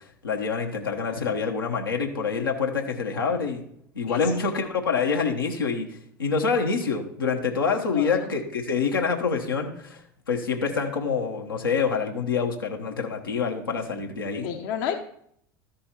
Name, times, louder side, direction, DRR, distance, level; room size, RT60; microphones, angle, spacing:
voice 1, 0.2-3.6 3.9-5.9 6.2-10.0 10.3-14.5, left 5 dB, 90° left, 1 dB, 1.1 m, -26 dB
voice 2, 7.9-8.3 14.4-14.9, left 9 dB, 65° left, 4 dB, 0.8 m, -30 dB
13.0 x 5.2 x 4.3 m, 0.68 s
hypercardioid pair, 75°, 11 cm